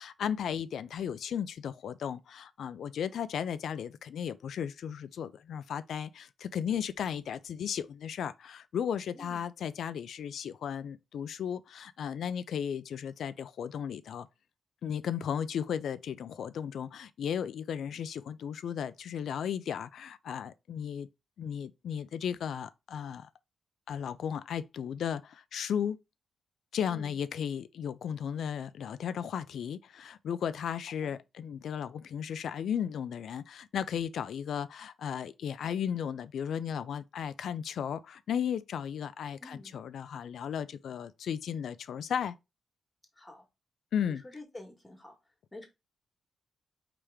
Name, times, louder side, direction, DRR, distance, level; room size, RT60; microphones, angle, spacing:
voice 1, 0.0-14.3 14.8-21.1 21.4-23.3 23.9-26.0 26.7-42.3 43.9-44.2, left 8 dB, 75° left, 0.4 m, -35 dB
voice 2, 9.1-9.5 26.9-27.2 31.0-31.2 39.4-39.8 43.2-43.4 44.1-45.2 45.5-45.7, left 2 dB, 15° left, 1.3 m, -48 dB
4.9 x 2.9 x 3.4 m
wide cardioid pair, 140°, 0 cm